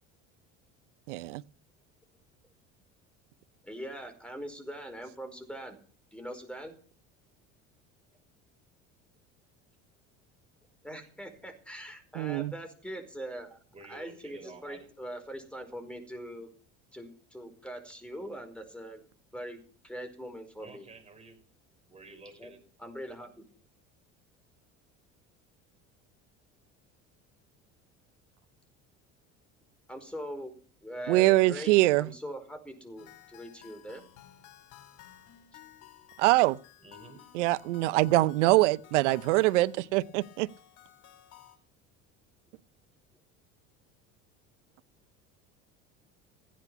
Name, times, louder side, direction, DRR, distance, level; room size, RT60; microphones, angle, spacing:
voice 1, 1.1-1.4 12.2-12.5 31.1-32.1 36.2-36.6 37.3-40.5, right 18 dB, 85° right, 0.7 m, -24 dB
voice 2, 3.6-5.8 6.1-6.7 10.8-13.6 13.9-16.5 16.9-19.0 19.3-20.9 22.4-22.5 22.8-23.4 29.9-30.5 30.8-34.0, equal, 5° left, 4.9 m, -42 dB
voice 3, 13.7-14.9 20.6-21.4 21.9-22.6 36.8-37.2, right 3 dB, 20° right, 6.0 m, -50 dB
sound 1, 33.0-41.6, left 12 dB, 60° left, 3.6 m, -55 dB
15.5 x 10.5 x 5.9 m
supercardioid pair, 85°, 35 cm